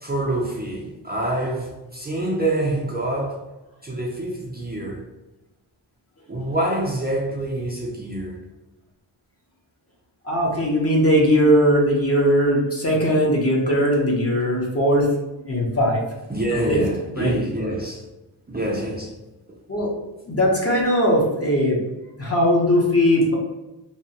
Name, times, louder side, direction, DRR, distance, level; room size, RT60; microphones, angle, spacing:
voice 1, 0.0-3.4 3.8-5.0 6.3-8.4 13.7-13.8 16.3-18.0 18.5-19.1, right 1 dB, 25° right, 0.5 m, -26 dB
voice 2, 10.2-15.1 15.5-16.0 16.5-16.8 17.1-17.4 19.7-19.9 20.3-21.8 22.2-23.3, equal, 35° left, 0.8 m, -19 dB
2.9 x 2.1 x 2.8 m
wide cardioid pair, 85°, 43 cm